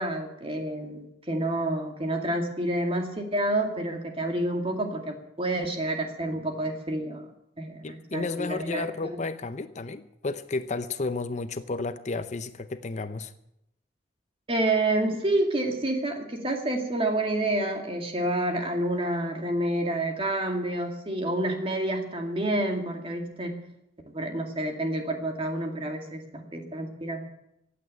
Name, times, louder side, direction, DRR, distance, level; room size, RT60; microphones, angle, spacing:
voice 1, 0.0-7.3 7.6-8.9 14.5-23.5 24.1-27.2, right 1 dB, 30° right, 3 dB, 2.3 m, -28 dB
voice 2, 7.8-13.3, left 3 dB, 40° left, 11 dB, 0.6 m, -32 dB
16.0 x 8.6 x 8.9 m, 0.81 s
head